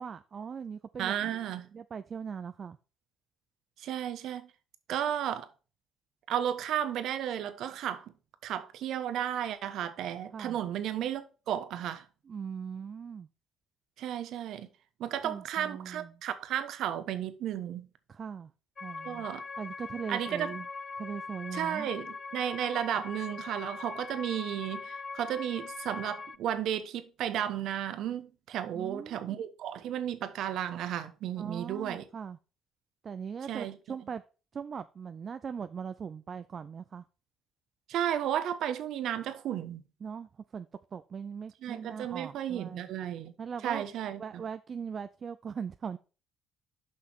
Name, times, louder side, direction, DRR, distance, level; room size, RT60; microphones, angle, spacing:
voice 1, 0.0-1.1 1.7-2.8 10.3-10.6 12.3-13.3 15.2-16.2 18.1-18.5 18.8-19.3 19.6-20.7 21.0-21.9 28.7-29.4 31.4-32.4 33.0-34.2 34.5-37.0 40.0-42.9 43.4-43.9 44.2-46.0, right 6 dB, 45° right, 0.5 m, -40 dB
voice 2, 1.0-1.7 3.8-4.5 4.9-5.5 6.3-8.0 8.4-12.0 14.0-14.7 15.0-17.9 19.0-19.4 20.1-20.5 21.5-32.0 33.5-33.8 37.9-39.8 41.6-43.3 43.6-44.4, right 10 dB, 70° right, 1.1 m, -33 dB
sound 1, 18.8-26.4, left 4 dB, 35° left, 0.5 m, -41 dB
6.6 x 5.7 x 6.2 m
supercardioid pair, 70°, 0 cm